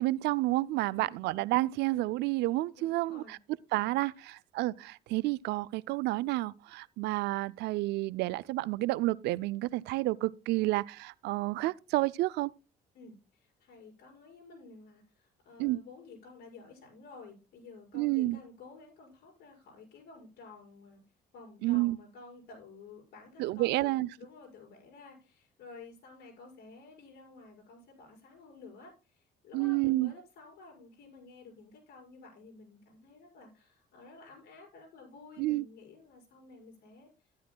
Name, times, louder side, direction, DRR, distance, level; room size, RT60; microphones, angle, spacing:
voice 1, 0.0-3.4 3.7-12.5 15.6-15.8 17.9-18.4 21.6-22.0 23.4-24.1 29.5-30.1 35.4-35.6, right 19 dB, 80° right, 0.4 m, -30 dB
voice 2, 2.7-3.4 4.2-4.3 12.9-21.0 21.3-37.1, left 3 dB, 70° left, 5.5 m, -52 dB
12.5 x 11.0 x 2.2 m
cardioid pair, 110°, 17 cm